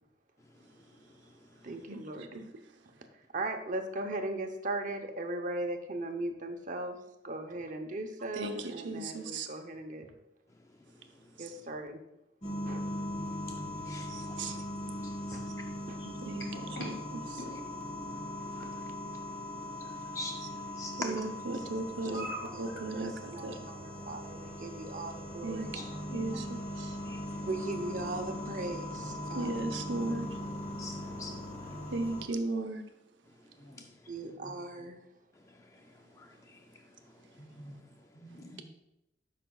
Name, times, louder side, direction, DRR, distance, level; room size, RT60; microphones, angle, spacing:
voice 1, 0.4-1.7 10.5-11.4 12.7-12.9 13.5-14.6 15.0-15.6 18.1-21.3 25.7-25.9 26.9-27.5 30.8-31.9 33.3-34.1 35.3-38.1, left 2 dB, 15° left, 4 dB, 0.4 m, -49 dB
voice 2, 1.6-2.3 3.3-6.9 7.2-10.1 11.4-12.0 12.7-12.8 15.3-15.4 15.9-16.0 18.6-18.7 21.0-21.2 21.5-21.6 22.1-22.2 22.5-22.6 22.9-25.7 27.5-29.6 34.1-35.0, right 2 dB, 45° right, 5 dB, 0.8 m, -38 dB
voice 3, 8.3-9.5 11.4-11.5 14.1-14.6 16.0-16.5 16.8-16.9 21.0-22.3 22.6-23.6 25.4-25.7 26.1-27.0 29.3-30.4 31.9-32.9, right 2 dB, 80° right, 6 dB, 0.8 m, -36 dB
sound 1, 12.4-32.3, left 1 dB, 40° left, 1.8 m, -40 dB
voice 4, 16.0-16.9 17.4-17.5 22.0-22.9 25.7-26.2 33.6-33.9 34.2-34.9 37.4-37.8 38.1-38.6, left 1 dB, 75° left, -1 dB, 2.5 m, -45 dB
sound 2, 21.5-31.9, equal, 15° right, 1.1 m, -54 dB
12.0 x 5.8 x 2.3 m, 0.86 s
head